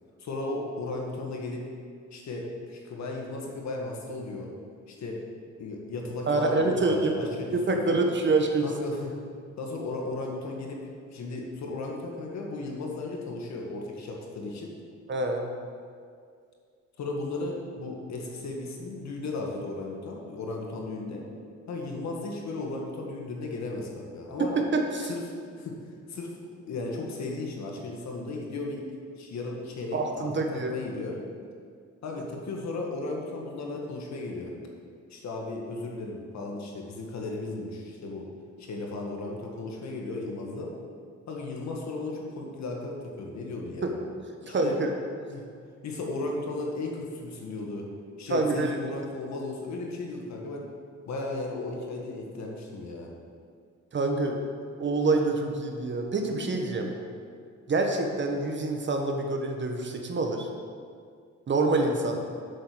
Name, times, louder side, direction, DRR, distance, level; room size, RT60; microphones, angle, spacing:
voice 1, 0.2-1.7 2.1-4.5 4.9-5.2 5.6-8.0 8.6-9.2 9.6-10.8 11.1-14.7 17.0-21.3 21.7-24.5 25.1-25.2 25.6-25.8 26.1-28.8 29.2-31.2 32.0-34.5 35.1-38.3 38.6-40.7 41.3-43.9 44.4-44.8 45.3-45.5 45.8-47.9 48.2-50.6 51.1-53.1, left 2 dB, 65° left, 0 dB, 1.9 m, -35 dB
voice 2, 6.3-7.1 7.5-8.7 15.1-15.5 24.4-25.1 29.9-30.7 43.8-43.9 44.5-44.9 48.3-48.7 53.9-54.4 54.8-56.9 57.7-60.5 61.5-62.2, right 3 dB, 40° right, 3 dB, 1.3 m, -26 dB
7.7 x 6.9 x 6.3 m, 2.2 s
cardioid pair, 90°, 30 cm